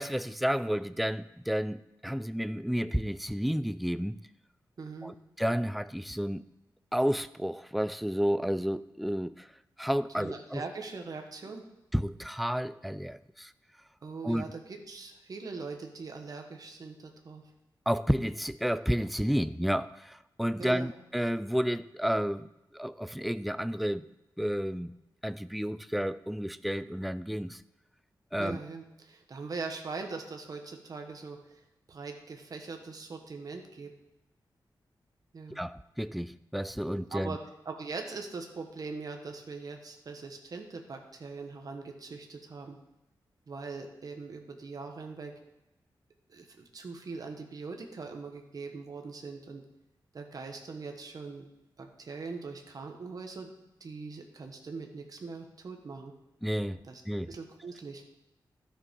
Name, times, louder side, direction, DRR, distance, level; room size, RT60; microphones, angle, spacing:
voice 1, 0.0-4.2 5.0-6.4 6.9-9.5 9.8-10.6 11.9-13.5 14.2-14.4 17.9-24.1 24.4-24.9 25.2-27.6 28.3-28.6 35.5-37.4 56.4-56.8 57.1-57.3, equal, ahead, 14 dB, 0.3 m, -31 dB
voice 2, 4.8-5.1 10.2-11.6 14.0-17.4 20.6-20.9 28.4-31.6 31.9-33.9 35.3-35.6 37.1-37.4 37.6-42.8 43.5-45.3 46.3-46.5 46.7-49.6 50.1-51.4 51.8-53.5 53.8-56.1 56.9-57.0 57.3-58.0, right 4 dB, 50° right, 4 dB, 1.3 m, -41 dB
12.5 x 7.0 x 5.3 m, 0.92 s
wide cardioid pair, 145°, 8 cm